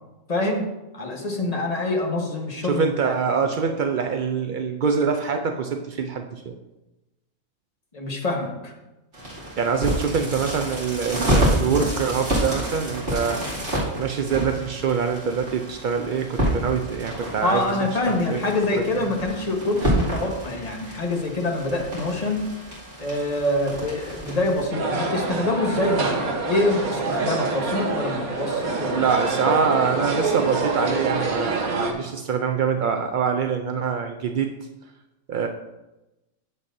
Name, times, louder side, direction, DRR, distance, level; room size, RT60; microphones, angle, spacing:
voice 1, 0.3-0.7 0.9-3.1 7.9-8.7 17.4-22.5 23.0-29.1, left 2 dB, 30° left, 1 dB, 1.3 m, -25 dB
voice 2, 2.6-6.6 9.6-13.6 13.9-17.7 18.1-18.4 18.9-19.0 28.9-34.5 35.3-35.5, right 6 dB, 75° right, 4 dB, 0.4 m, -24 dB
sound 1, 9.1-24.7, right 1 dB, 55° right, 3.2 m, -28 dB
sound 2, 24.7-31.9, right 3 dB, 90° right, 1.5 m, -26 dB
11.0 x 7.4 x 2.6 m, 1.0 s
omnidirectional pair, 1.5 m